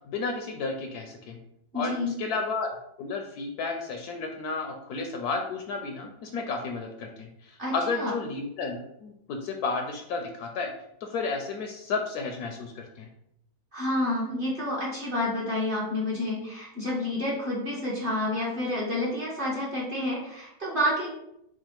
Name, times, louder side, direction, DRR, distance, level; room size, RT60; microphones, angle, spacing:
voice 1, 0.1-1.4 1.7-10.7 11.0-13.1, left 4 dB, 70° left, 3 dB, 1.0 m, -32 dB
voice 2, 1.7-2.1 7.6-8.1 13.7-21.1, left 1 dB, 35° right, -5 dB, 1.1 m, -29 dB
4.8 x 2.3 x 4.4 m, 0.79 s
omnidirectional pair, 1.9 m